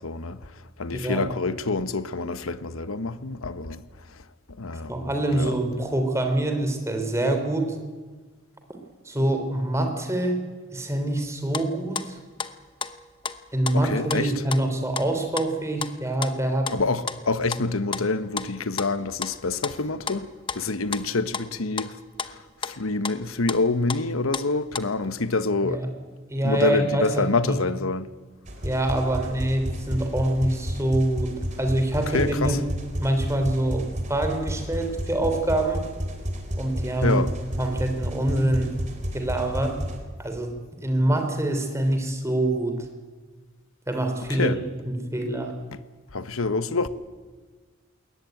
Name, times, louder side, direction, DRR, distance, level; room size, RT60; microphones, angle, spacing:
voice 1, 0.0-0.4 0.8-3.8 4.6-4.9 5.4-5.5 13.9-14.3 16.7-20.3 20.6-21.9 22.8-25.8 26.4-28.1 32.1-32.5 37.0-37.3 44.4-44.6 46.1-46.9, left 3 dB, 85° left, 1.2 m, -26 dB
voice 2, 0.9-1.3 4.9-7.7 9.0-10.4 10.7-12.2 13.5-16.7 25.6-25.9 26.3-27.6 28.6-32.6 33.0-35.8 36.6-37.3 37.6-38.7 39.1-39.8 40.2-40.5 40.8-42.7 43.9-44.6 44.8-45.5, right 1 dB, 15° right, 3.2 m, -25 dB
sound 1, 11.2-11.3 11.5-24.1 24.3-24.8, left 6 dB, 25° left, 0.8 m, -34 dB
sound 2, 28.5-40.0, equal, 35° right, 3.5 m, -32 dB
21.0 x 18.5 x 9.3 m
head